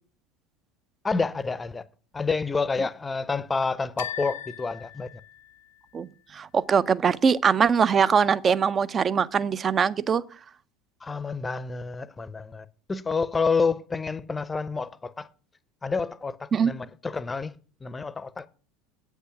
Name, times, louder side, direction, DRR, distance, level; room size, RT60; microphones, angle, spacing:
voice 1, 1.0-1.8 2.1-5.2 11.0-15.3 15.8-18.5, left 4 dB, 20° left, 0.6 m, -29 dB
sound 1, 4.0-5.9, left 10 dB, 70° left, 0.7 m, -39 dB
voice 2, 5.9-10.2 16.5-16.7, right 6 dB, 30° right, 0.5 m, -22 dB
8.4 x 8.2 x 5.9 m
figure-of-eight pair, 70°, 0 cm